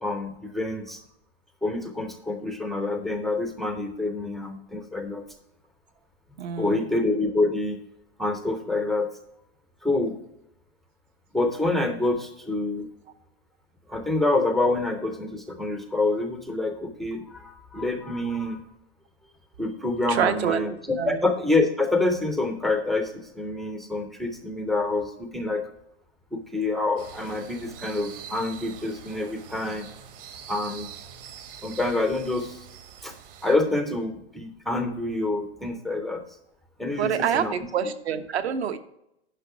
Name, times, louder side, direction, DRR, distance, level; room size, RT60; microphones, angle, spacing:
voice 1, 0.0-1.0 1.6-5.2 6.6-7.8 8.2-9.1 9.8-10.2 11.3-12.9 13.9-18.6 19.6-25.6 26.3-29.9 30.5-30.9 31.6-32.6 33.0-33.1 33.4-36.2 36.8-37.5, left 2 dB, ahead, 6 dB, 0.3 m, -27 dB
voice 2, 6.4-6.9 20.1-20.7 21.0-21.2 37.0-38.8, right 8 dB, 75° right, 8 dB, 1.1 m, -26 dB
sound 1, 27.0-33.5, right 8 dB, 60° right, 1.5 m, -44 dB
10.5 x 5.3 x 4.6 m, 0.80 s
hypercardioid pair, 145°, 32 cm